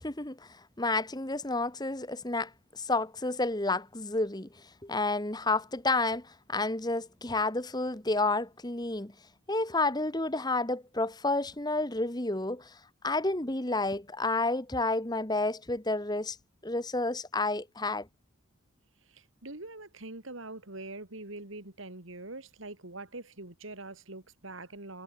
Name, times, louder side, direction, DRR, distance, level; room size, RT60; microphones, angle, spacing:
voice 1, 0.0-9.1 9.5-12.8 13.0-16.4 16.6-18.1, left 2 dB, 20° left, 1.5 m, -30 dB
voice 2, 19.1-25.0, right 2 dB, 70° right, 3.1 m, -44 dB
head